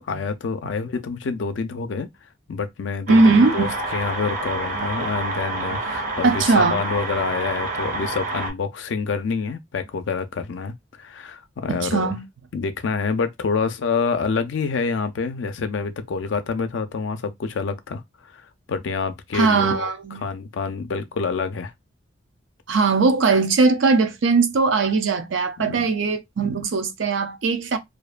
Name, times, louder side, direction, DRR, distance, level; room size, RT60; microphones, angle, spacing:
voice 1, 0.0-2.1 2.5-12.2 12.5-18.0 18.3-18.4 18.7-19.9 20.2-21.7 25.6-25.9, left 5 dB, 75° left, 0.4 m, -27 dB
sound 1, 3.1-8.5, right 2 dB, 45° right, 0.6 m, -28 dB
voice 2, 3.1-3.7 4.7-4.9 5.9-6.9 11.7-12.3 19.3-20.2 22.7-27.8, right 4 dB, 80° right, 0.5 m, -20 dB
2.6 x 2.1 x 2.4 m
head